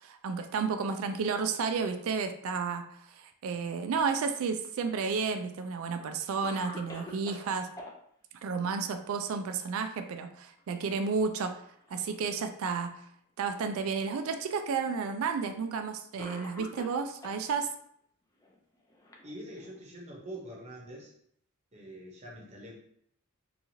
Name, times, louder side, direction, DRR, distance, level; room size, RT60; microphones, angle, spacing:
voice 1, 0.0-7.7 8.4-11.6 11.9-12.9 13.4-17.7, right 5 dB, 65° right, 7 dB, 0.3 m, -32 dB
Cough, 4.6-5.5 6.0-6.1 6.4-7.9 9.8-10.2 10.6-10.7 11.5-12.2 13.0-13.1 14.1-14.2 15.4-15.5 16.2-17.4 18.4-19.8, left 1 dB, 15° left, 0.3 m, -47 dB
voice 2, 19.2-21.1 21.7-22.8, right 1 dB, 30° right, -2 dB, 0.7 m, -44 dB
2.9 x 2.4 x 2.7 m, 0.67 s
head